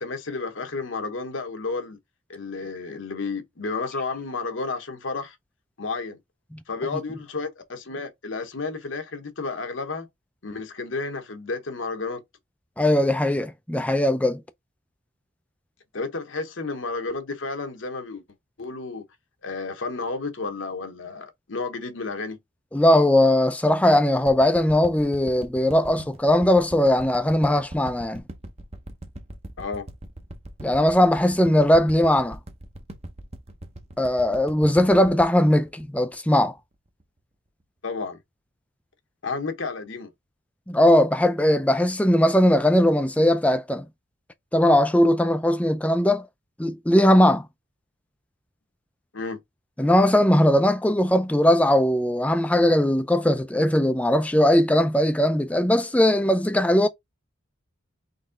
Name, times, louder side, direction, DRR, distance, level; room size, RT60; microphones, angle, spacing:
voice 1, 0.0-2.0 2.3-5.4 5.8-6.2 6.7-10.1 10.4-12.2 15.9-18.2 18.6-19.0 19.4-22.4 29.6-29.9 37.8-38.2 39.2-40.1 49.1-49.4, left 3 dB, 65° left, 1.0 m, -31 dB
voice 2, 12.8-14.4 22.7-28.2 30.6-32.4 34.0-36.5 40.7-43.8 44.5-46.3 46.6-47.4 49.8-56.9, left 1 dB, 5° left, 0.4 m, -19 dB
sound 1, 24.3-36.6 37.0-37.1, right 1 dB, 30° right, 0.7 m, -41 dB
4.1 x 3.1 x 3.7 m
head